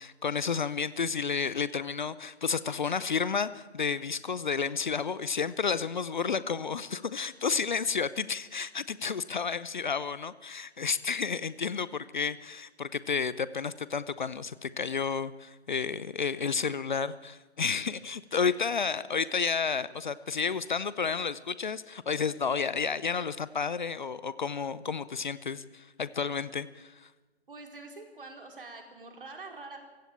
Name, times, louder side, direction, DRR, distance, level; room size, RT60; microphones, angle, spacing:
voice 1, 0.0-27.1, left 5 dB, 45° left, 17 dB, 0.8 m, -31 dB
voice 2, 27.5-29.8, right 3 dB, 55° right, 4 dB, 4.7 m, -45 dB
22.5 x 16.0 x 8.7 m, 1.3 s
figure-of-eight pair, 140°, 32 cm